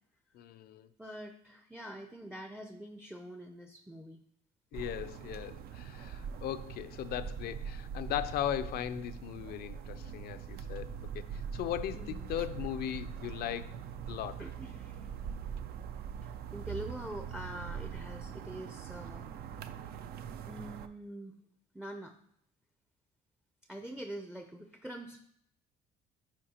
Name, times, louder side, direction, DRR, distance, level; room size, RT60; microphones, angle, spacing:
voice 1, 0.3-0.9 4.7-13.7 14.1-14.4, left 11 dB, 65° left, 0.5 m, -38 dB
voice 2, 1.0-4.2 11.9-12.3 14.4-15.1 16.2-19.3 20.5-21.4 21.7-22.1 23.7-25.2, right 1 dB, 5° right, 0.5 m, -45 dB
sound 1, 4.7-20.9, right 7 dB, 65° right, 0.4 m, -42 dB
10.0 x 4.5 x 2.9 m
cardioid pair, 110°, 17 cm